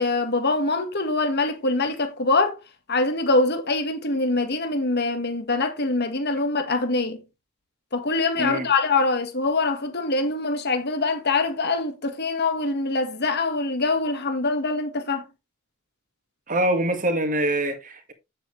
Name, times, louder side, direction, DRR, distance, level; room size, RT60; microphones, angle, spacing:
voice 1, 0.0-2.6 2.9-7.2 7.9-15.2, left 3 dB, 50° left, 1.8 m, -24 dB
voice 2, 8.4-8.7 16.5-18.1, right 1 dB, 40° right, 2.0 m, -24 dB
9.2 x 7.8 x 3.3 m
head